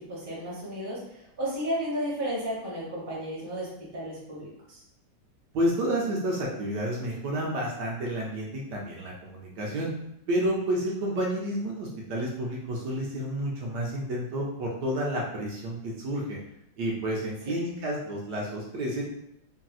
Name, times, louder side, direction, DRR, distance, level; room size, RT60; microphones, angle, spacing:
voice 1, 0.1-3.7 3.9-4.8 17.5-17.7, equal, 20° right, -7 dB, 0.7 m, -33 dB
voice 2, 5.5-9.9 10.3-16.4 16.8-19.0, right 1 dB, 75° right, -3 dB, 1.1 m, -30 dB
3.1 x 2.7 x 2.3 m, 0.78 s
omnidirectional pair, 2.0 m